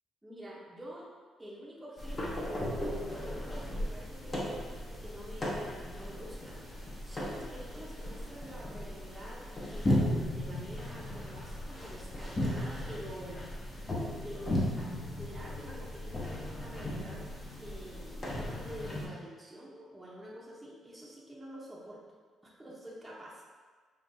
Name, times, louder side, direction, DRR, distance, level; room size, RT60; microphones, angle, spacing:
voice 1, 0.2-1.1 1.4-6.6 7.0-13.4 14.2-22.0 22.4-23.4, equal, 10° right, -6 dB, 0.9 m, -47 dB
sound 1, 2.0-19.1, left 1 dB, 25° left, 0.9 m, -36 dB
5.1 x 2.5 x 2.7 m, 1.5 s
cardioid pair, 90°, 0 cm